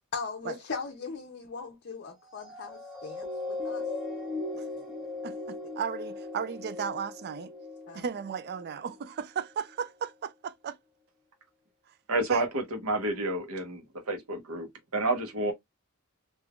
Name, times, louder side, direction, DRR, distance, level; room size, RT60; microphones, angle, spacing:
voice 1, 0.1-3.9 7.9-8.0, left 4 dB, 55° left, 0.6 m, -39 dB
sound 1, 2.3-9.0 9.6-9.7, left 3 dB, 5° right, 1.0 m, -38 dB
voice 2, 5.2-7.5 7.9-10.8 12.3-12.5, right 7 dB, 50° right, 0.4 m, -35 dB
voice 3, 12.1-15.5, right 2 dB, 80° right, 1.0 m, -30 dB
3.5 x 2.6 x 2.3 m
head